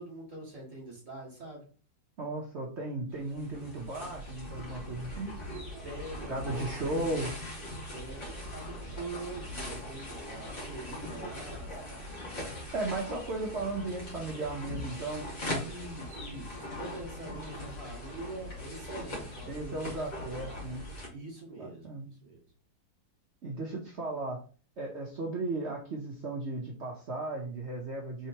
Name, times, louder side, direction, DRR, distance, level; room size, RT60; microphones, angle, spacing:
voice 1, 0.0-1.6 5.8-7.2 7.9-12.0 15.6-20.1 20.3-20.7 21.0-22.4, right 2 dB, 25° right, -3 dB, 2.6 m, -44 dB
voice 2, 2.2-5.3 6.3-7.3 12.7-15.3 17.4-17.7 19.5-20.8 21.6-22.1 23.4-24.4 24.8-28.3, right 2 dB, 65° right, 0 dB, 0.6 m, -35 dB
sound 1, 3.1-21.1, left 1 dB, 50° left, 2.0 m, -41 dB
4.4 x 3.6 x 2.8 m, 0.39 s
omnidirectional pair, 2.0 m